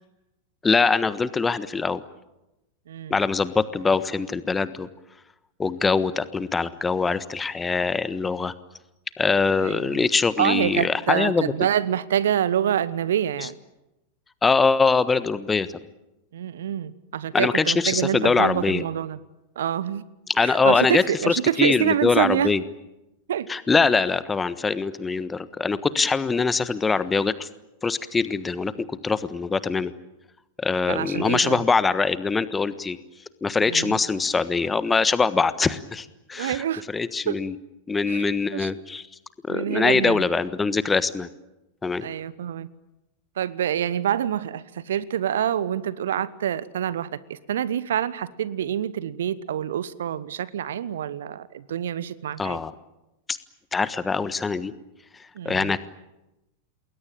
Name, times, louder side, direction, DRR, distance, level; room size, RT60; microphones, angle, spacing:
voice 1, 0.6-2.0 3.1-4.9 5.6-8.5 9.2-11.5 13.4-13.5 14.4-15.7 17.3-18.8 20.3-22.6 23.5-27.5 27.8-29.9 30.6-33.0 33.4-37.6 37.9-39.1 39.5-41.3 41.8-42.1 52.4-52.7 53.3-53.4 53.7-54.7 55.4-55.9, left 4 dB, 15° left, 15 dB, 1.3 m, -23 dB
voice 2, 2.9-3.2 9.6-10.1 10.4-13.5 16.3-19.2 19.6-20.0 20.4-22.5 23.3-23.5 30.9-31.6 33.6-34.0 36.4-36.8 37.3-37.4 38.1-38.7 39.5-40.2 42.0-42.7 43.4-52.6 55.4-55.7, right 10 dB, 60° right, 18 dB, 1.1 m, -26 dB
28.5 x 21.0 x 9.0 m, 0.96 s
figure-of-eight pair, 90°, 0 cm